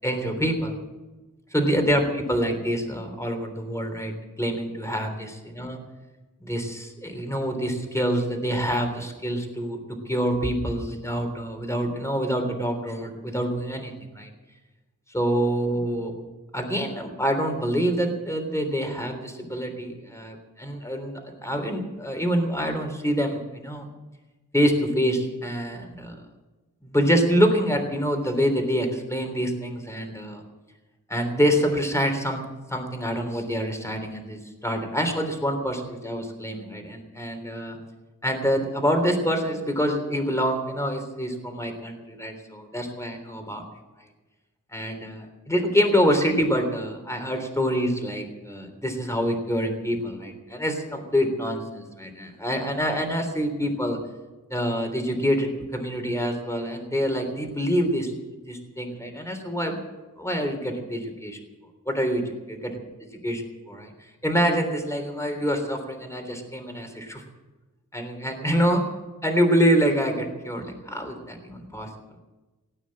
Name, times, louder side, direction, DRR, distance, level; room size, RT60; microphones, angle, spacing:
voice 1, 0.0-0.8 1.5-4.1 4.4-5.8 6.4-9.8 10.0-14.3 15.1-16.1 16.5-23.9 24.5-26.2 26.8-30.4 31.1-32.4 32.7-37.8 38.2-43.6 44.7-54.0 54.5-58.1 58.5-59.8 60.2-61.4 61.8-62.6 63.2-63.9 64.2-67.2 67.9-68.8 69.2-71.9, equal, 10° left, 4 dB, 3.3 m, -26 dB
18.0 x 9.3 x 8.6 m, 1.2 s
wide cardioid pair, 75°, 33 cm